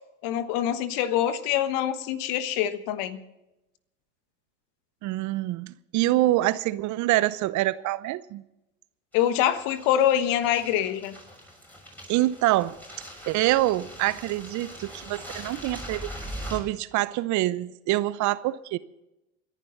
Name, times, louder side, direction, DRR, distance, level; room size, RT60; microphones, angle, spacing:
voice 1, 0.2-3.2 9.1-11.1, left 11 dB, 60° left, 1.4 m, -25 dB
voice 2, 5.0-8.4 12.1-12.7 13.3-16.1 16.5-18.8, right 16 dB, 50° right, 0.8 m, -25 dB
sound 1, 9.1-16.6, equal, 5° left, 6.7 m, -42 dB
28.0 x 11.0 x 4.0 m
hypercardioid pair, 75°, 38 cm